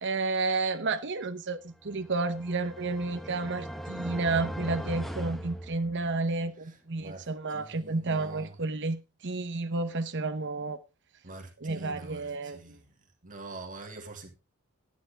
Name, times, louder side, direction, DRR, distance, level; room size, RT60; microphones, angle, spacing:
voice 1, 0.0-10.8 11.6-12.8, right 3 dB, 55° right, 1.0 m, -31 dB
sound 1, 1.9-6.3, equal, ahead, 0.9 m, -39 dB
voice 2, 6.6-8.6 11.2-12.9 13.2-14.3, right 3 dB, 40° right, 2.4 m, -45 dB
11.5 x 10.5 x 3.6 m
head